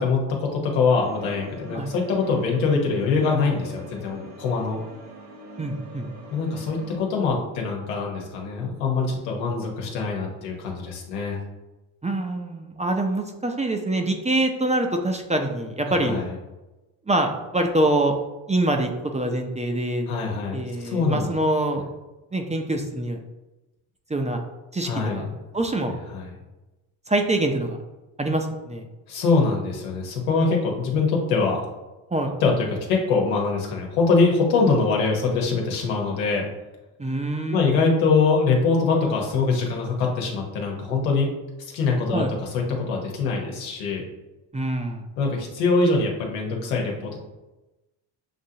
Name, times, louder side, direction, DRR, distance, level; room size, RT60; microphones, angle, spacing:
voice 1, 0.0-4.8 6.3-11.4 16.0-16.3 20.1-21.3 24.8-25.2 26.1-26.3 29.1-31.6 32.4-36.4 37.5-41.3 41.6-42.2 42.5-44.0 45.2-47.2, left 4 dB, 90° left, 0 dB, 1.2 m, -23 dB
sound 1, 0.9-7.0, right 1 dB, 80° right, 1.0 m, -43 dB
voice 2, 5.6-6.1 12.0-16.2 17.1-18.2 18.5-20.1 20.5-21.8 22.3-23.2 24.1-24.4 24.7-25.3 25.5-25.9 27.1-27.8 28.2-28.9 32.1-32.3 37.0-37.7 42.1-42.3 44.5-45.1, right 1 dB, 15° right, 3 dB, 0.6 m, -25 dB
6.8 x 2.6 x 2.8 m, 1.0 s
supercardioid pair, 65°, 47 cm